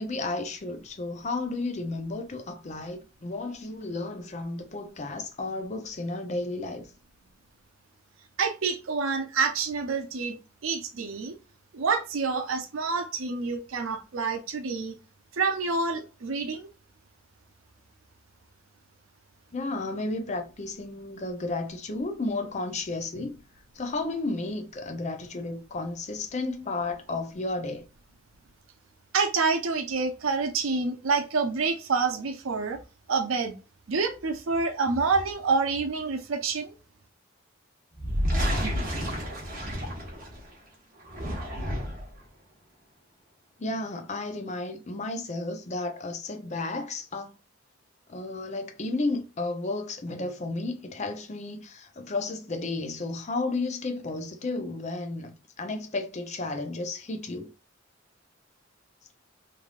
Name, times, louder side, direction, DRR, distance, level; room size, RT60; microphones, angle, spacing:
voice 1, 0.0-6.9 19.5-23.4 23.7-27.8 43.6-47.4 48.1-57.5, left 2 dB, 35° left, 0.6 m, -33 dB
voice 2, 8.4-10.4 10.6-11.4 11.7-14.9 15.3-16.7 29.1-32.8 33.1-33.6 33.9-36.7, right 4 dB, 85° right, 0.6 m, -27 dB
sound 1, 37.9-40.5 41.0-42.2, equal, 45° right, 1.1 m, -30 dB
3.3 x 2.6 x 2.3 m
head